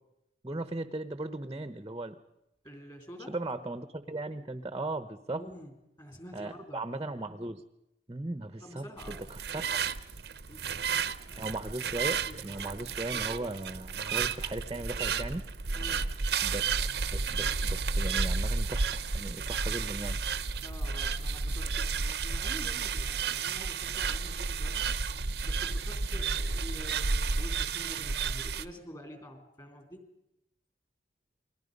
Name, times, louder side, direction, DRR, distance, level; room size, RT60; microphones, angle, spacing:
voice 1, 0.4-2.2 3.3-5.4 6.3-7.6 8.1-8.9 9.3-9.8 11.4-15.5 16.4-16.6 17.1-20.2, right 2 dB, 20° right, 11 dB, 1.0 m, -37 dB
voice 2, 2.6-3.4 5.4-5.7 6.0-6.8 8.6-9.3 9.5-9.7 10.5-11.5 12.0-12.7 15.7-16.2 20.6-24.9 25.4-30.0, equal, 25° left, 4 dB, 3.5 m, -48 dB
sound 1, 9.0-28.6, right 5 dB, 65° right, 0.9 m, -32 dB
29.5 x 22.5 x 5.3 m, 0.86 s
head